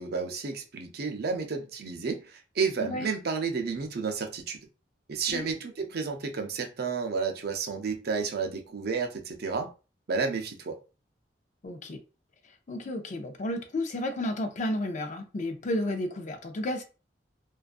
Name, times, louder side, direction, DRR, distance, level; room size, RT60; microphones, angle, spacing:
voice 1, 0.0-4.6 5.1-9.7 10.1-10.8, right 5 dB, 60° right, 0.5 m, -31 dB
voice 2, 11.6-12.0 12.7-16.8, left 1 dB, 45° left, 0.5 m, -32 dB
2.5 x 2.3 x 2.4 m
head